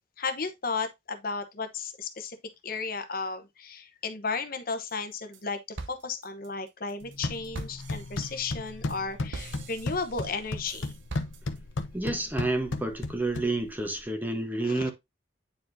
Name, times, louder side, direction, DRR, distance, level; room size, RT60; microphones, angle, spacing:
voice 1, 0.2-2.4 2.6-10.9 14.6-14.9, left 4 dB, 50° left, 1.0 m, -34 dB
sound 1, 4.9-5.4 5.8-11.8, right 3 dB, 80° right, 0.9 m, -44 dB
sound 2, 7.0-14.0, left 2 dB, 85° left, 0.9 m, -35 dB
voice 2, 11.9-14.9, right 2 dB, 10° right, 1.1 m, -29 dB
9.3 x 4.6 x 2.7 m
head